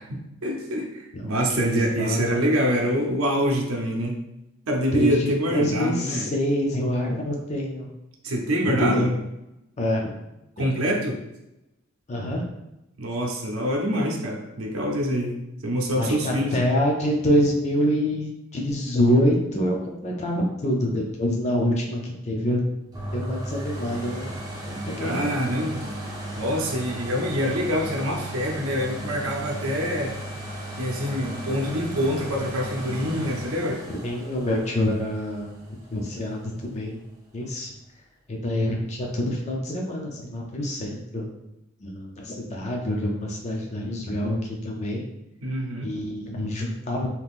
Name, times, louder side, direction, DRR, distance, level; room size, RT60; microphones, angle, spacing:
voice 1, 0.0-4.2 4.7-6.3 8.2-9.1 10.6-11.2 13.0-16.6 25.0-30.2 30.8-33.8 45.4-45.9, equal, 85° right, 0 dB, 0.6 m, -26 dB
voice 2, 1.1-2.5 4.9-7.9 8.8-9.1 9.8-10.1 10.6-10.7 12.1-12.4 16.0-22.6 23.1-24.4 24.6-25.3 33.9-35.5 35.9-37.0 37.3-37.7 38.3-41.3 41.8-45.0 45.8-47.1, equal, 35° left, 0 dB, 0.5 m, -26 dB
sound 1, 22.9-36.6 37.1-37.2, right 1 dB, 20° right, 0.7 m, -35 dB
3.5 x 2.9 x 2.4 m, 0.91 s
head